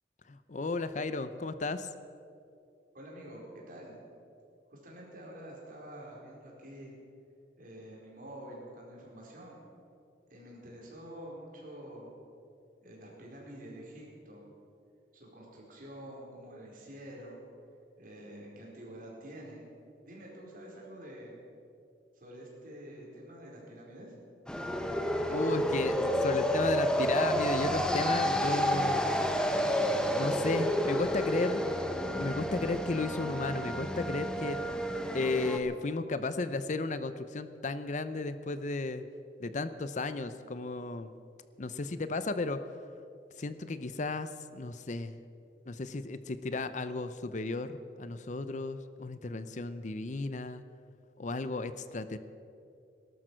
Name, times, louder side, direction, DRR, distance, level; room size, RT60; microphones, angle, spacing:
voice 1, 0.3-1.9 25.3-29.0 30.2-31.6 32.1-34.6 35.1-39.0 39.4-41.1 41.6-42.6 43.4-45.2 45.7-50.6 51.2-52.2, left 3 dB, 45° left, 12 dB, 0.6 m, -34 dB
voice 2, 2.9-4.0 4.7-7.0 7.6-9.6 10.3-12.1 12.8-14.4 15.1-17.5 18.0-19.7 20.1-21.4 22.1-24.1, right 1 dB, 50° right, -3 dB, 4.6 m, -47 dB
sound 1, 24.5-35.6, equal, 5° left, 1.1 m, -30 dB
18.0 x 12.5 x 6.3 m, 2.6 s
head